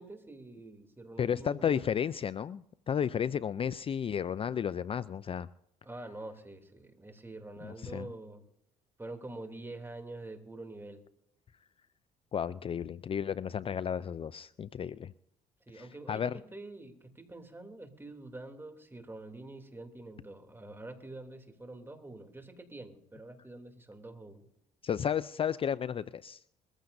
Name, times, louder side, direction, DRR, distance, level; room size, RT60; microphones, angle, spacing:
voice 1, 0.0-2.0 5.8-8.4 9.0-11.0 15.7-24.5, right 2 dB, 15° right, 4 dB, 3.0 m, -46 dB
voice 2, 1.2-5.5 7.6-8.1 12.3-15.1 15.7-16.4 24.8-26.4, left 8 dB, 40° left, 17 dB, 0.4 m, -33 dB
22.0 x 15.0 x 2.7 m, 0.77 s
supercardioid pair, 80°, 15 cm